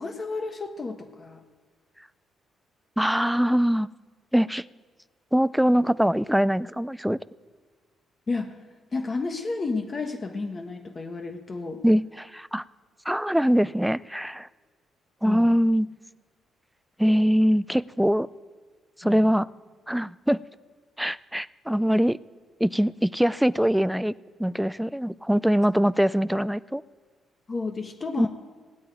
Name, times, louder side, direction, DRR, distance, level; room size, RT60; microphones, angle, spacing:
voice 1, 0.0-1.4 8.3-8.5 8.9-11.8 15.2-15.5 19.0-19.3 27.5-28.3, left 3 dB, 35° left, 5 dB, 1.3 m, -31 dB
voice 2, 3.0-3.9 4.3-4.6 5.3-7.2 11.8-12.6 13.1-14.5 15.2-15.9 17.0-18.3 19.0-19.5 19.9-20.4 21.0-22.2 22.6-24.1 24.4-26.8 28.2-28.3, equal, 5° right, 19 dB, 0.4 m, -22 dB
17.0 x 8.7 x 9.2 m, 1.5 s
cardioid pair, 90°, 0 cm